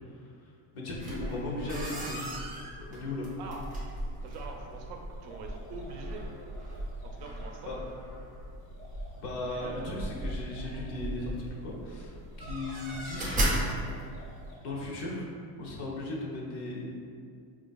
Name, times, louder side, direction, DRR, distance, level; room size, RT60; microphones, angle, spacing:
voice 1, 0.7-2.3 2.9-3.3 7.7-7.8 9.2-13.7 14.6-15.3 15.6-16.9, left 2 dB, 55° left, -3 dB, 0.8 m, -37 dB
sound 1, 0.9-14.6, right 1 dB, 15° right, 0.6 m, -37 dB
Gurgling / Sink (filling or washing), 1.1-5.6, left 1 dB, 75° left, 1.2 m, -54 dB
voice 2, 4.2-6.2 7.0-7.7 9.4-10.1, right 4 dB, 60° right, 1 dB, 0.5 m, -44 dB
sound 2, 5.1-7.6 8.6-11.1 12.2-14.8, equal, 25° left, 0.4 m, -54 dB
4.4 x 2.4 x 2.3 m, 2.3 s
cardioid pair, 135°, 49 cm